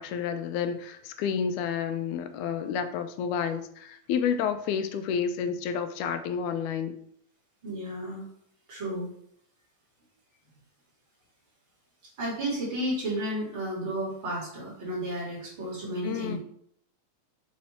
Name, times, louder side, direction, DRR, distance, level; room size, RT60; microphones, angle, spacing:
voice 1, 0.0-6.9 16.0-16.4, left 7 dB, 90° left, 9 dB, 2.0 m, -30 dB
voice 2, 7.6-8.2 8.7-9.1 12.2-16.4, right 1 dB, 40° right, -5 dB, 2.6 m, -32 dB
7.0 x 3.1 x 4.3 m, 0.66 s
omnidirectional pair, 3.4 m